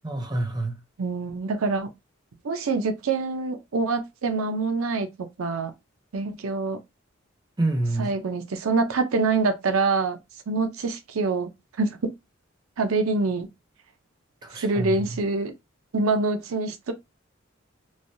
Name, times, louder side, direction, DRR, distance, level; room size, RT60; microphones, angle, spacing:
voice 1, 0.0-0.7 7.6-8.1 14.4-15.1, right 2 dB, 20° right, 0.5 m, -27 dB
voice 2, 1.0-1.9 2.4-5.7 6.1-6.8 8.0-10.2 10.5-11.5 11.8-12.1 12.8-13.5 14.5-15.5 15.9-16.9, right 3 dB, 85° right, 0.6 m, -25 dB
3.2 x 2.1 x 2.6 m
head